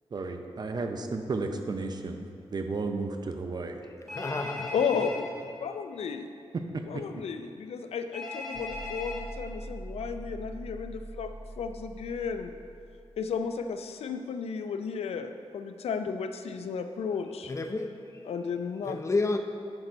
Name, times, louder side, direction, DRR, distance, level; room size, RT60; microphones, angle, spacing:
voice 1, 0.1-3.8 6.5-7.0, right 3 dB, 45° right, 5 dB, 0.6 m, -33 dB
voice 2, 4.1-5.1 17.5-18.0 18.8-19.4, left 3 dB, 30° left, 5 dB, 0.5 m, -30 dB
Telephone, 4.1-5.2 8.1-9.2, left 3 dB, 5° left, 1.7 m, -38 dB
voice 3, 4.7-5.3 5.6-6.3 6.9-12.5 13.2-17.5 18.3-19.0, left 6 dB, 90° left, 7 dB, 0.4 m, -33 dB
sound 1, 8.5-13.6, right 1 dB, 25° right, 1.6 m, -43 dB
11.0 x 4.0 x 4.5 m, 2.4 s
wide cardioid pair, 120°, 10 cm